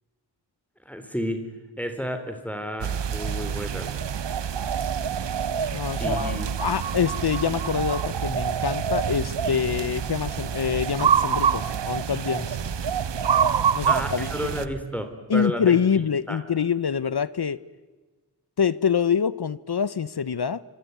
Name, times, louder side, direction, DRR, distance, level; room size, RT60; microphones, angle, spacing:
voice 1, 0.9-1.5 1.8-3.9 6.0-6.5 13.9-16.0 16.3-16.4, equal, 5° left, 6 dB, 3.8 m, -31 dB
sound 1, 2.8-14.7, right 7 dB, 90° right, 0.9 m, -26 dB
sound 2, 3.7-14.8, right 4 dB, 55° right, 1.8 m, -41 dB
voice 2, 5.7-12.6 13.7-14.3 15.3-17.6 18.6-20.6, left 7 dB, 65° left, 18 dB, 0.9 m, -25 dB
25.5 x 24.5 x 9.4 m, 1.3 s
wide cardioid pair, 70°, 42 cm